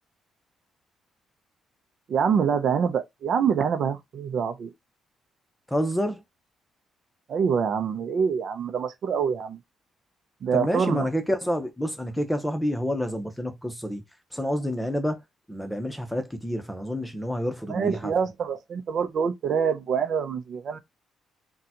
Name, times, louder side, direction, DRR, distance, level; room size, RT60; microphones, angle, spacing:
voice 1, 2.1-4.7 7.3-9.6 10.4-11.1 17.7-20.8, right 6 dB, 60° right, 0.6 m, -25 dB
voice 2, 5.7-6.2 10.5-14.0 14.3-15.2 15.5-18.1, equal, 5° left, 0.8 m, -28 dB
3.8 x 2.3 x 2.8 m
cardioid pair, 90°, 0 cm